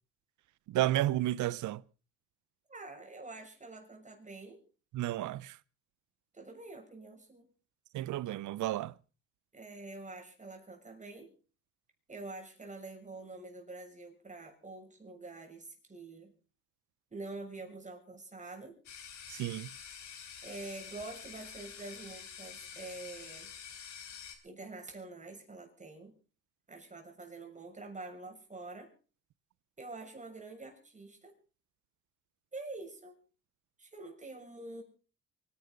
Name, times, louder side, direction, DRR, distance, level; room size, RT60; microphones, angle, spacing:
voice 1, 0.7-1.8 4.9-5.6 7.9-8.9 19.3-19.7, right 14 dB, 75° right, 0.7 m, -32 dB
voice 2, 2.7-4.6 6.3-7.5 9.5-11.3 12.1-16.3 17.1-18.8 20.4-23.5 24.4-26.1 26.7-28.9 29.8-31.3 32.5-33.2 33.8-34.8, right 2 dB, 25° right, 6.4 m, -46 dB
sound 1, 18.9-24.4, left 7 dB, 70° left, 4.2 m, -48 dB
24.0 x 10.5 x 5.2 m
cardioid pair, 90°, 30 cm